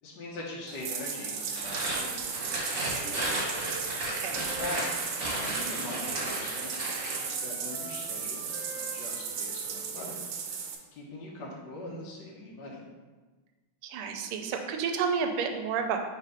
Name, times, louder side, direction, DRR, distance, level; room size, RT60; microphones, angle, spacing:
voice 1, 0.0-3.4 4.3-5.1 5.3-6.7 7.0-10.6 10.9-12.8, left 2 dB, 60° left, -3 dB, 1.5 m, -42 dB
Bathtub (filling or washing), 0.7-10.7, right 6 dB, 70° right, 1.2 m, -35 dB
sound 1, 1.5-7.3, right 1 dB, 30° right, 1.4 m, -34 dB
Wind instrument woodwind instrument, 3.4-6.4 6.7-10.2, equal, 10° right, 0.9 m, -47 dB
voice 2, 13.8-16.0, right 6 dB, 85° right, 4 dB, 1.5 m, -30 dB
5.7 x 3.4 x 4.9 m, 1.3 s
omnidirectional pair, 2.4 m